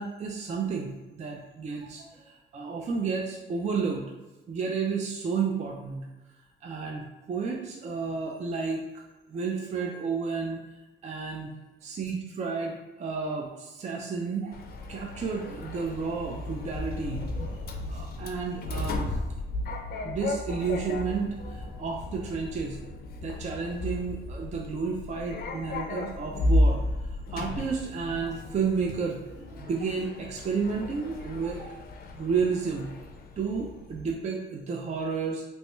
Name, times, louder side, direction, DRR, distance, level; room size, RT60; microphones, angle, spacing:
voice 1, 0.0-4.0 4.5-6.0 6.6-8.8 9.3-10.6 11.0-11.5 11.8-14.6 14.9-19.3 20.0-22.8 23.2-26.8 27.3-31.8 32.2-32.9 33.4-35.4, right 5 dB, 35° right, 0 dB, 0.4 m, -31 dB
Sliding door, 14.5-34.1, left 1 dB, 50° left, 0.4 m, -33 dB
3.1 x 2.2 x 3.0 m, 1.1 s
cardioid pair, 90°, 20 cm